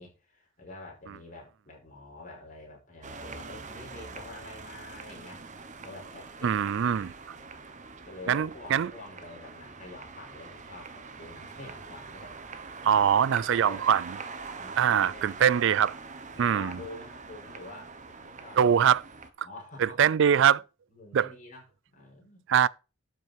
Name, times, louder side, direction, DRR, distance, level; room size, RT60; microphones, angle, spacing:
voice 1, 0.0-5.4 5.8-6.7 6.9-7.5 8.1-12.4 12.9-13.1 13.4-14.0 14.5-15.7 16.4-18.9 19.4-20.0 20.9-21.6 21.9-22.5, left 2 dB, 40° left, 5.5 m, -47 dB
sound 1, 3.0-19.3, right 4 dB, 40° right, 1.2 m, -44 dB
voice 2, 6.4-7.1 8.3-8.9 12.9-14.0 14.8-15.9 16.4-16.8 18.6-19.0 19.8-20.6 21.1-21.3 22.5-22.7, right 8 dB, 65° right, 0.4 m, -23 dB
12.0 x 6.2 x 4.4 m
head